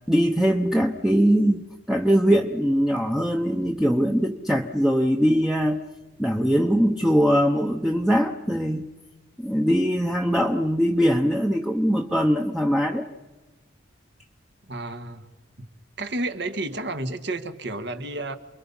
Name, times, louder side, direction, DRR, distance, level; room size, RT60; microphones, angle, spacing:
voice 1, 0.1-5.8 6.2-8.9 9.4-13.1, equal, 5° right, 2 dB, 0.8 m, -21 dB
voice 2, 14.7-15.3 16.0-18.3, right 2 dB, 60° right, 8 dB, 1.6 m, -31 dB
29.0 x 22.5 x 5.6 m, 1.2 s
head